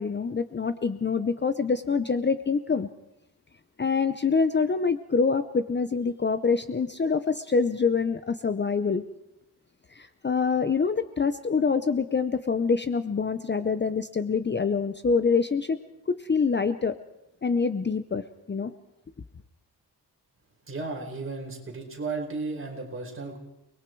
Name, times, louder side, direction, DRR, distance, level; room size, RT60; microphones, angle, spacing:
voice 1, 0.0-2.9 3.8-9.0 9.9-15.8 16.1-17.0 17.4-18.7, left 5 dB, 25° left, 11 dB, 0.7 m, -25 dB
voice 2, 20.7-23.4, right 3 dB, 30° right, 1 dB, 5.0 m, -34 dB
30.0 x 21.0 x 4.7 m, 0.87 s
wide cardioid pair, 155°, 40 cm